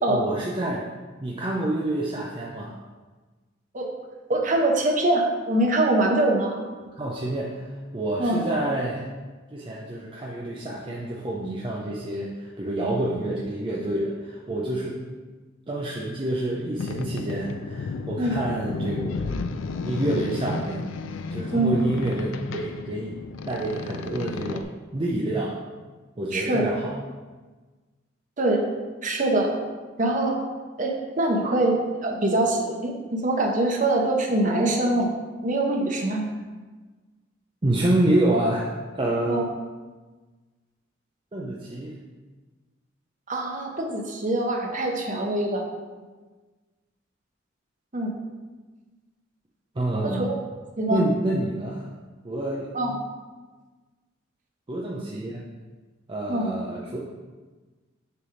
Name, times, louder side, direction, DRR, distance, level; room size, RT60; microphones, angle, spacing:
voice 1, 0.1-0.8 1.2-2.7 7.0-7.6 7.9-9.0 9.5-15.0 15.7-19.4 19.8-20.9 21.3-23.2 23.5-25.6 26.2-27.0 37.6-38.7 38.9-39.5 41.3-42.0 49.8-50.3 50.9-51.8 52.2-52.7 54.7-55.4 56.1-57.0, right 1 dB, 25° right, -3 dB, 0.5 m, -27 dB
voice 2, 4.3-6.6 8.2-8.4 18.2-18.4 21.5-21.7 26.3-26.6 28.4-28.7 29.0-29.5 30.0-30.4 30.8-35.1 35.4-36.3 39.3-39.5 43.3-45.7 47.9-48.1 50.0-50.3 50.8-51.1 52.7-52.9 56.3-56.5, right 2 dB, 40° right, 1 dB, 0.9 m, -23 dB
Boat Water vehicle, 16.8-24.6, left 4 dB, 70° left, 0.4 m, -33 dB
6.8 x 3.4 x 4.9 m, 1.3 s
head